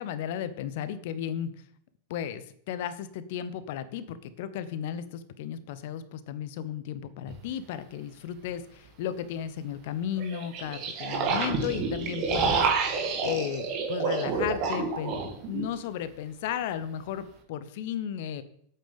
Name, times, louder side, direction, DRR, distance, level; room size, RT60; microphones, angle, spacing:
voice 1, 0.0-1.5 2.1-15.2 15.5-18.4, left 9 dB, 50° left, 14 dB, 0.9 m, -34 dB
sound 1, 7.3-7.4 10.2-15.7, right 4 dB, 40° right, 2.4 m, -29 dB
8.9 x 8.4 x 5.3 m, 0.65 s
figure-of-eight pair, 90°, 0 cm